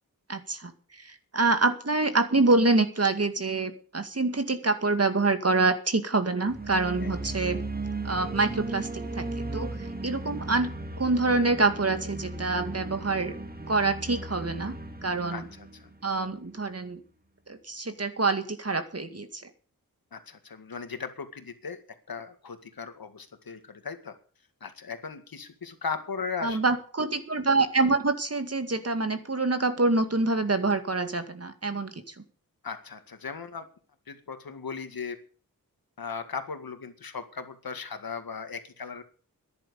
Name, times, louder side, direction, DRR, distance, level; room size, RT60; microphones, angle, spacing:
voice 1, 0.3-7.6 8.0-8.9 9.2-9.7 10.0-13.3 13.7-15.4 16.0-17.0 17.5-19.4 26.4-32.1, right 3 dB, 45° right, 8 dB, 2.2 m, -26 dB
sound 1, 6.5-16.5, right 2 dB, 25° right, 1.9 m, -36 dB
voice 2, 15.3-15.9 20.1-21.8 22.1-24.2 24.6-26.6 32.6-33.7 34.1-35.2 36.0-39.0, left 5 dB, 85° left, 8 dB, 2.0 m, -37 dB
12.5 x 11.0 x 7.0 m, 0.41 s
wide cardioid pair, 55°, 35 cm